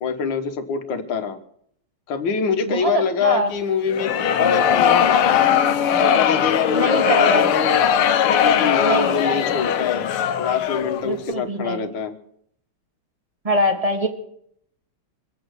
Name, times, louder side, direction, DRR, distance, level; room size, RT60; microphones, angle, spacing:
voice 1, 0.0-1.4 2.1-5.4 6.0-7.8 8.3-10.1 10.4-12.1, left 6 dB, 65° left, 7 dB, 2.0 m, -25 dB
voice 2, 2.7-3.5 6.7-7.5 8.8-9.4 11.0-11.8 13.4-14.1, equal, 15° right, 4 dB, 1.9 m, -23 dB
sound 1, 3.9-11.1, left 8 dB, 85° left, 1.7 m, -19 dB
24.0 x 8.6 x 6.4 m, 0.69 s
omnidirectional pair, 2.3 m